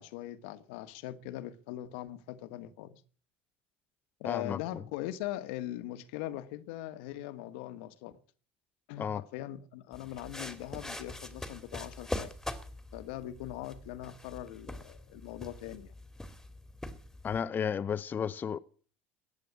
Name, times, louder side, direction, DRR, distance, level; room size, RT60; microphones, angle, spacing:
voice 1, 0.0-3.0 4.2-8.1 8.9-12.4 12.9-15.9, left 14 dB, 75° left, 1.4 m, -41 dB
voice 2, 4.3-4.8 9.0-9.2 17.2-18.6, left 7 dB, 30° left, 0.7 m, -33 dB
sound 1, 9.9-17.4, left 1 dB, 5° left, 2.4 m, -43 dB
15.0 x 9.3 x 8.6 m
hypercardioid pair, 90°, 6 cm